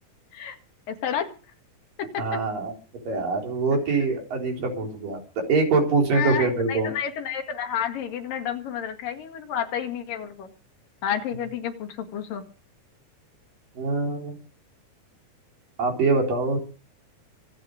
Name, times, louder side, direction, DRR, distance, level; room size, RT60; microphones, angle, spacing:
voice 1, 0.9-1.3 2.1-2.2 4.0-4.1 6.1-10.5 11.0-12.4, left 8 dB, 85° left, 6 dB, 3.7 m, -30 dB
voice 2, 2.2-2.7 3.1-5.2 5.5-6.9 13.8-14.3 15.8-16.6, right 3 dB, 80° right, 2 dB, 5.7 m, -24 dB
25.5 x 9.2 x 5.1 m, 0.36 s
omnidirectional pair, 3.8 m